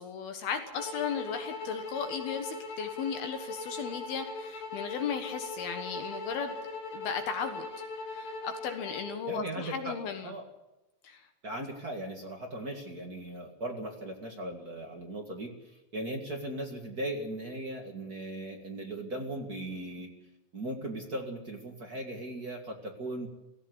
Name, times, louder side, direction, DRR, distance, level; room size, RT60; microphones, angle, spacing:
voice 1, 0.0-6.6 6.9-7.7 8.1-10.3 11.0-11.3, left 6 dB, 65° left, 7 dB, 3.0 m, -36 dB
sound 1, 0.8-9.1, left 3 dB, 85° left, 5.9 m, -40 dB
voice 2, 9.2-10.0 10.2-10.4 11.4-15.5 15.9-20.1 20.5-23.3, right 1 dB, 40° right, 2 dB, 1.3 m, -38 dB
17.0 x 16.0 x 9.7 m, 0.99 s
omnidirectional pair, 5.1 m